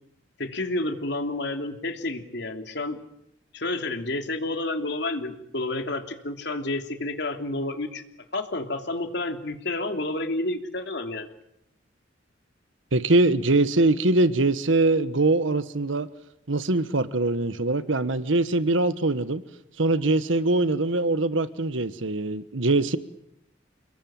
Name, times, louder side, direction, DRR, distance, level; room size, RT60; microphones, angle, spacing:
voice 1, 0.4-3.0 3.5-8.0 8.3-11.3, left 2 dB, 65° left, 6 dB, 3.1 m, -30 dB
voice 2, 12.9-16.1 16.5-19.4 19.8-23.0, right 2 dB, 90° right, 13 dB, 1.3 m, -22 dB
30.0 x 20.5 x 9.0 m, 0.77 s
head